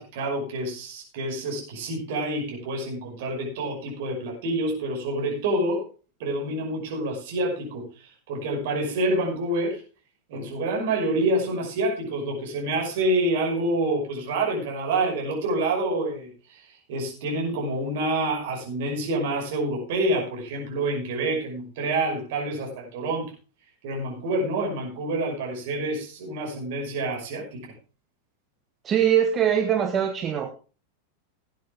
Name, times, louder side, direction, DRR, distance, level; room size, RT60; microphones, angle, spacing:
voice 1, 0.0-5.9 6.2-9.8 10.3-23.3 23.8-27.7, right 2 dB, 50° right, 0 dB, 5.8 m, -27 dB
voice 2, 28.8-30.5, right 9 dB, 25° right, 5 dB, 1.3 m, -22 dB
18.0 x 9.4 x 3.6 m, 0.35 s
figure-of-eight pair, 90°, 0 cm